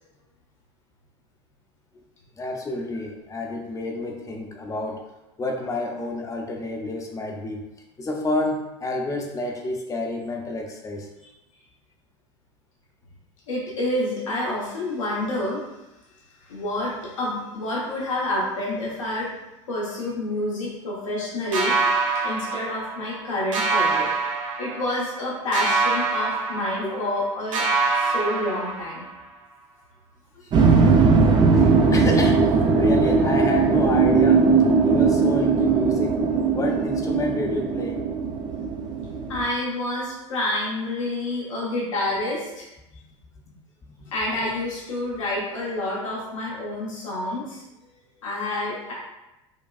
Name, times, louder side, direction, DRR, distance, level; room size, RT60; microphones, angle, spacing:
voice 1, 2.4-5.0 5.4-7.6 8.0-11.1 26.8-27.0 31.5-34.5 34.8-36.2 36.5-38.0 44.0-44.1, left 2 dB, 20° left, 2 dB, 0.6 m, -29 dB
voice 2, 13.5-15.6 16.5-19.3 19.7-21.7 22.2-24.3 24.6-27.7 27.9-29.0 30.3-30.7 39.3-42.7 44.1-47.6 48.2-48.9, left 1 dB, 85° left, -6 dB, 1.2 m, -28 dB
sound 1, 21.5-23.2 23.5-25.2 25.5-27.2 27.5-29.2, right 4 dB, 85° right, 0.6 m, -25 dB
sound 2, 30.5-39.4, right 4 dB, 30° right, 0.5 m, -19 dB
5.3 x 2.3 x 2.4 m, 0.95 s
hypercardioid pair, 90°, 16 cm